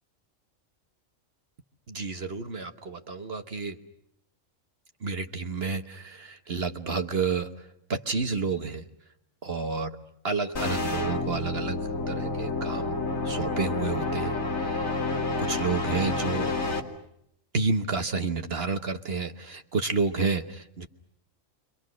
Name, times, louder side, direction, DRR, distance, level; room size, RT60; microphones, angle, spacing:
voice 1, 1.9-3.8 5.0-8.8 9.4-9.9 10.2-12.9 13.2-15.0 15.4-16.5 17.5-20.9, right 4 dB, 50° right, 6 dB, 1.4 m, -30 dB
sound 1, 10.6-16.8, left 3 dB, 85° left, 3.0 m, -29 dB
30.0 x 25.0 x 6.4 m, 0.76 s
omnidirectional pair, 1.4 m